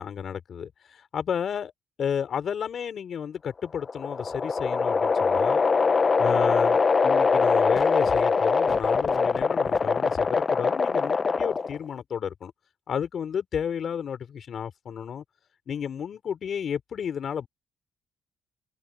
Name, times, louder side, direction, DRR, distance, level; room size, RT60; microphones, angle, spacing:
voice 1, 0.0-1.7 2.0-5.6 6.2-12.5 12.9-15.2 15.7-17.5, left 8 dB, 55° left, 4.1 m, -32 dB
sound 1, 3.6-11.8, left 4 dB, 35° left, 0.6 m, -23 dB
cardioid pair, 90°, 0 cm